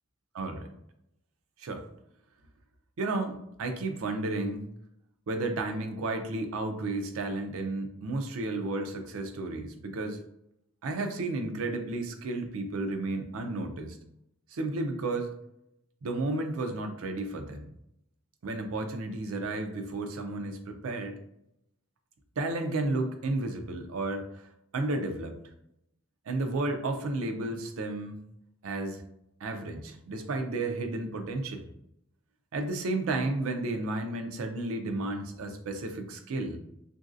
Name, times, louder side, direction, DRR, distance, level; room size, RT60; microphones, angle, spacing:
voice 1, 0.3-0.7 1.6-1.8 3.0-4.7 5.3-10.2 10.8-14.0 14.5-15.3 16.0-17.6 18.4-21.2 22.4-24.4 24.7-25.4 26.3-28.2 28.6-29.0 29.4-31.7 32.5-36.6, right 2 dB, 80° right, 6 dB, 0.4 m, -32 dB
3.1 x 2.5 x 2.5 m, 0.79 s
head